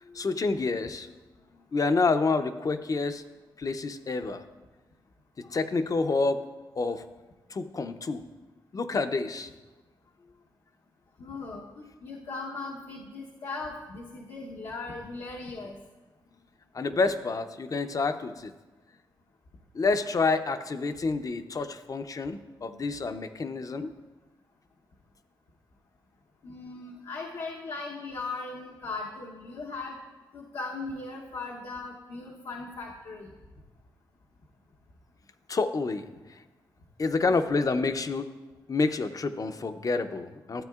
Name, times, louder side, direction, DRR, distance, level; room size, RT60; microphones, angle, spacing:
voice 1, 0.1-1.1 1.7-3.2 3.6-4.4 5.4-6.5 6.8-7.1 7.5-8.2 8.7-9.5 16.7-18.5 19.7-23.9 35.5-36.1 37.0-38.3 38.7-40.6, left 3 dB, 45° left, 10 dB, 0.5 m, -28 dB
voice 2, 11.2-15.8 26.4-30.0 30.3-33.3 37.3-37.4, left 3 dB, 85° left, -2 dB, 0.9 m, -38 dB
13.5 x 8.4 x 2.4 m, 1.2 s
cardioid pair, 70°, 8 cm